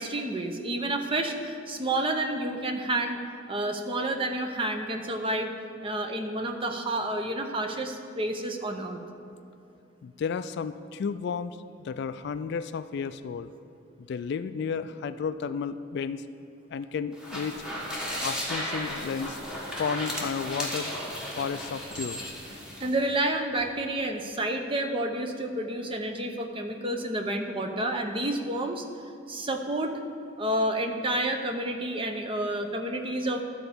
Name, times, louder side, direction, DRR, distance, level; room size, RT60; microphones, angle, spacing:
voice 1, 0.0-3.2 3.5-5.5 5.8-9.0 22.8-28.8 29.3-29.9 30.4-33.4, right 1 dB, 25° right, 5 dB, 0.7 m, -29 dB
voice 2, 10.0-13.5 14.0-16.2 16.7-17.6 18.2-19.4 19.8-20.9 21.4-22.3, left 6 dB, 55° left, 13 dB, 0.3 m, -32 dB
sound 1, 17.1-22.9, equal, 5° right, 1.3 m, -35 dB
Chink clink, 20.6-20.9 21.9-22.7 23.4-23.7, equal, 60° right, 2.7 m, -43 dB
12.5 x 4.4 x 6.9 m, 2.5 s
head